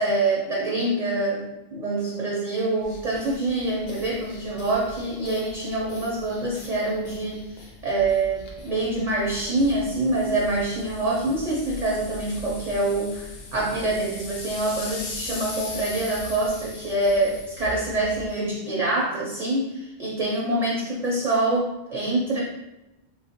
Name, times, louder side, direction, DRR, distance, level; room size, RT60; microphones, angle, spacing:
voice 1, 0.0-13.2 13.5-22.4, right 2 dB, 45° right, -4 dB, 0.5 m, -25 dB
sound 1, 2.8-18.3, left 2 dB, 70° left, 0.8 m, -40 dB
3.3 x 2.3 x 2.8 m, 0.95 s
omnidirectional pair, 1.1 m